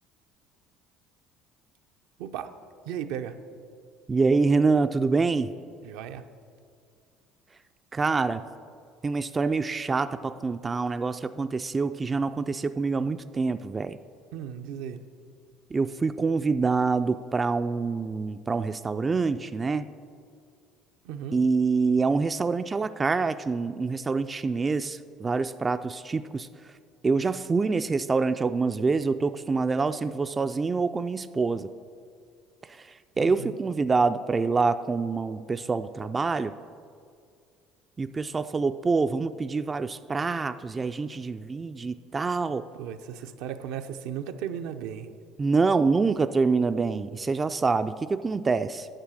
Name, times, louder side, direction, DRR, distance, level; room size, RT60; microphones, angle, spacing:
voice 1, 2.9-3.3 5.8-6.2 14.3-15.0 21.0-21.4 33.2-33.6 42.7-45.1, right 9 dB, 75° right, 7 dB, 0.6 m, -36 dB
voice 2, 4.1-5.5 7.9-8.4 9.0-14.0 15.7-19.9 21.3-26.5 27.0-31.7 32.6-36.5 38.0-42.7 45.4-48.9, right 4 dB, 25° right, 10 dB, 0.3 m, -26 dB
10.0 x 6.7 x 6.3 m, 2.2 s
supercardioid pair, 85°, 0 cm